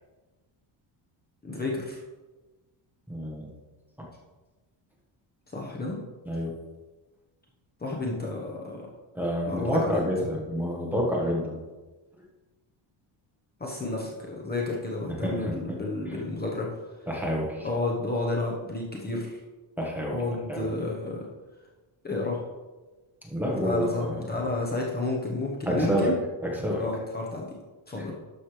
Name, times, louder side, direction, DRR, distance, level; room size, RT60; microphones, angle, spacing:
voice 1, 1.4-2.0 5.5-6.0 7.8-8.9 9.4-10.0 13.6-16.8 17.6-19.4 20.1-21.3 22.0-22.4 23.5-26.1 26.8-27.5 27.9-28.1, left 2 dB, 20° left, -2 dB, 1.2 m, -31 dB
voice 2, 3.1-3.5 6.3-6.6 9.1-11.6 15.1-15.8 17.1-17.7 19.8-20.2 20.5-20.7 23.2-24.3 25.7-26.1 26.4-26.8 28.0-28.1, equal, 5° right, -3 dB, 1.3 m, -28 dB
12.0 x 6.4 x 3.3 m, 1.2 s
cardioid pair, 165°, 48 cm